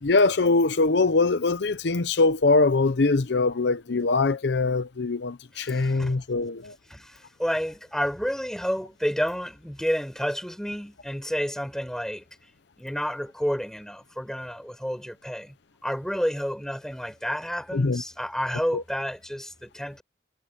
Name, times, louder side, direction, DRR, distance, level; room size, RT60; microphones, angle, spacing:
voice 1, 0.0-6.8 17.7-18.0 18.7-18.8, left 3 dB, 70° left, 0.7 m, -22 dB
voice 2, 5.6-6.1 6.9-12.3 12.8-15.6 15.8-20.0, equal, 5° left, 6.7 m, -30 dB
head